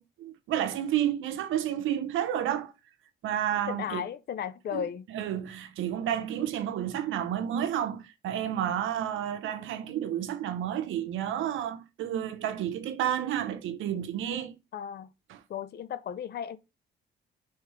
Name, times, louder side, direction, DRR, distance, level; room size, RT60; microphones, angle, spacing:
voice 1, 0.0-2.7 3.2-4.1 4.7-14.6 15.3-15.4, right 10 dB, 80° right, 0.7 m, -31 dB
voice 2, 3.7-5.1 14.7-15.1 15.5-16.6, left 9 dB, 55° left, 0.5 m, -35 dB
3.5 x 3.1 x 4.6 m
cardioid pair, 90°, 20 cm